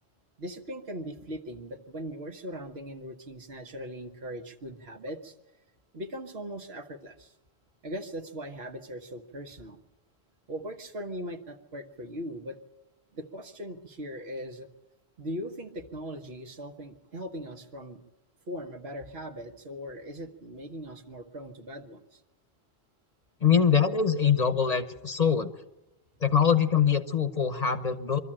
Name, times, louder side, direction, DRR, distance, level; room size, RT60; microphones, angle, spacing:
voice 1, 0.4-5.3 5.9-7.3 7.8-9.8 10.5-12.6 13.1-14.7 15.2-18.0 18.5-22.2, equal, 70° right, 5 dB, 1.5 m, -39 dB
voice 2, 23.4-25.5 26.2-28.2, left 7 dB, 40° left, 9 dB, 0.9 m, -23 dB
23.5 x 14.0 x 8.8 m, 1.0 s
omnidirectional pair, 1.1 m